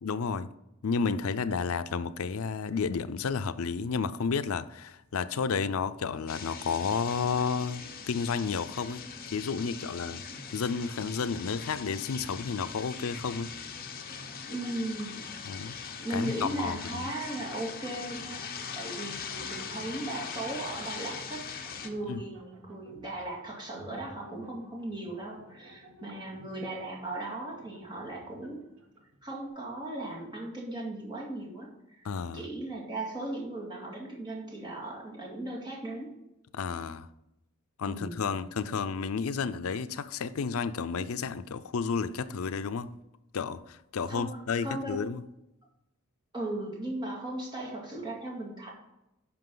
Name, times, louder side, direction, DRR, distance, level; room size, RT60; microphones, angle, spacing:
voice 1, 0.0-0.5 0.8-7.8 8.1-9.0 9.3-10.2 10.5-13.5 15.5-15.8 16.1-17.1 22.1-22.2 32.0-32.4 36.5-37.1 37.8-42.9 43.3-45.2, left 5 dB, 75° left, 0.5 m, -31 dB
sound 1, 6.3-21.9, left 6 dB, 45° left, 0.9 m, -41 dB
sound 2, 10.3-15.8 16.1-16.2 17.2-29.5, equal, 60° right, 1.3 m, -54 dB
voice 2, 14.5-15.2 16.0-28.6 29.2-32.1 32.3-36.1 37.9-38.2 38.7-38.9 44.1-45.0 46.3-48.7, right 1 dB, 20° right, 2.2 m, -37 dB
10.5 x 5.9 x 3.8 m
head